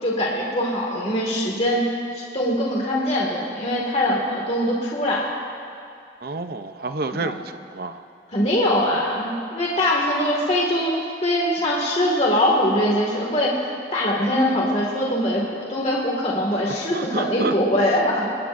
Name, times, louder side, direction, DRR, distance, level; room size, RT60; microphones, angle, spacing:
voice 1, 0.0-1.9 2.1-5.3 7.1-7.4 8.3-18.3, left 1 dB, 35° left, -3 dB, 2.0 m, -22 dB
voice 2, 6.2-8.0 16.9-17.5, right 3 dB, 55° right, 8 dB, 0.7 m, -29 dB
26.5 x 21.0 x 2.6 m, 2.4 s
head